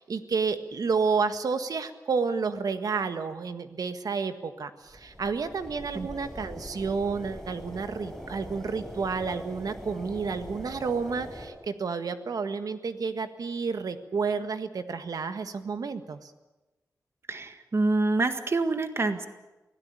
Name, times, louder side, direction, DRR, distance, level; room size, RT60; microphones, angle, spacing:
voice 1, 0.0-16.3, right 5 dB, 75° right, 9 dB, 1.7 m, -30 dB
sound 1, 4.9-11.5, equal, 5° left, 7.9 m, -42 dB
voice 2, 17.3-19.3, right 3 dB, 45° right, 8 dB, 1.8 m, -26 dB
24.0 x 17.0 x 9.9 m, 1.1 s
wide cardioid pair, 130°, 6 cm